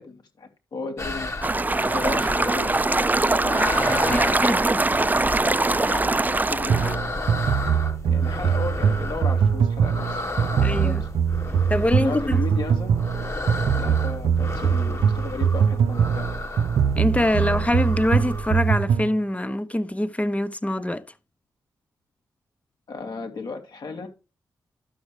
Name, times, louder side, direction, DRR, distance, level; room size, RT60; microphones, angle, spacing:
voice 1, 0.0-1.3 1.8-3.9 5.8-7.1 8.0-11.1 12.0-13.0 13.8-16.2 22.9-24.1, left 4 dB, 65° left, 2.9 m, -35 dB
sound 1, 1.0-18.7, left 2 dB, 35° left, 2.0 m, -33 dB
sound 2, 1.4-7.0, right 2 dB, 20° right, 0.5 m, -22 dB
voice 2, 4.1-4.8 5.9-6.0 10.6-11.1 11.7-12.4 17.0-21.0, left 1 dB, 15° left, 1.1 m, -24 dB
sound 3, 6.7-19.1, right 7 dB, 80° right, 0.5 m, -22 dB
12.5 x 6.2 x 3.3 m
supercardioid pair, 40°, 8 cm